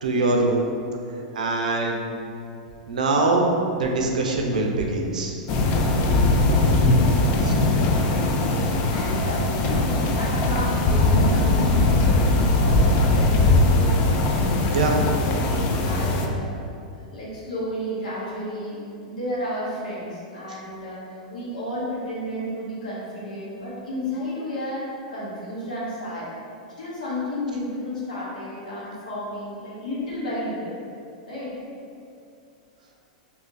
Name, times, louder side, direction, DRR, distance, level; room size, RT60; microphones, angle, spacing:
voice 1, 0.0-0.7 1.3-2.1 2.9-3.5 3.7-5.4 7.4-7.5 14.7-15.0, right 2 dB, 85° right, 1 dB, 0.5 m, -23 dB
sound 1, 5.5-16.3, left 2 dB, 45° left, 0.4 m, -20 dB
voice 2, 7.6-13.4 15.8-16.5 17.1-26.3 26.8-30.8 31.3-31.5, equal, 85° left, -7 dB, 1.1 m, -33 dB
2.7 x 2.6 x 3.8 m, 2.5 s
hypercardioid pair, 115°, 4 cm